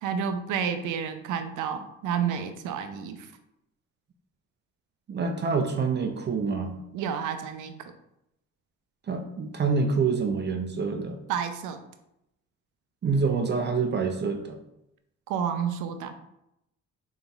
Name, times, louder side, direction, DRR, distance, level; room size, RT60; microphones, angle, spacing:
voice 1, 0.0-3.3 6.9-7.7 11.3-11.8 15.3-16.1, right 7 dB, 85° right, 8 dB, 0.5 m, -30 dB
voice 2, 5.1-6.8 9.1-11.2 13.0-14.4, right 4 dB, 35° right, 4 dB, 0.5 m, -26 dB
4.1 x 3.8 x 2.3 m, 0.82 s
cardioid pair, 90°, 30 cm